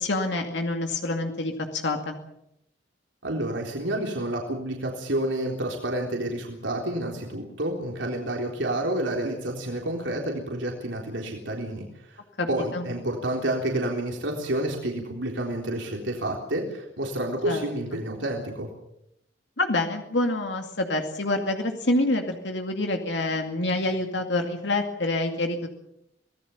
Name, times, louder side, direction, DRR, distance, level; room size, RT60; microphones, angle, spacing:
voice 1, 0.0-2.2 12.4-12.5 12.7-12.9 17.5-17.6 19.6-25.7, left 2 dB, 70° left, 4 dB, 2.4 m, -27 dB
voice 2, 3.2-12.2 12.5-18.7, right 1 dB, 80° right, 1 dB, 3.7 m, -29 dB
26.0 x 19.0 x 7.1 m, 0.80 s
head